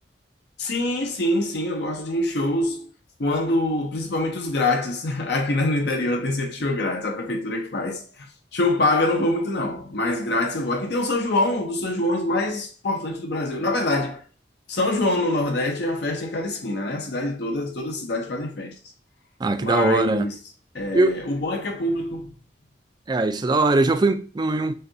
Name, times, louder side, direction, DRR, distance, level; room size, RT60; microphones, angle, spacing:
voice 1, 0.6-2.9 3.2-14.2 14.7-18.7 19.6-20.4 20.7-22.3, left 2 dB, 65° left, 0.7 m, -25 dB
voice 2, 19.4-20.3 20.9-21.2 23.1-24.8, right 2 dB, 25° right, 0.4 m, -21 dB
6.4 x 2.3 x 2.7 m
head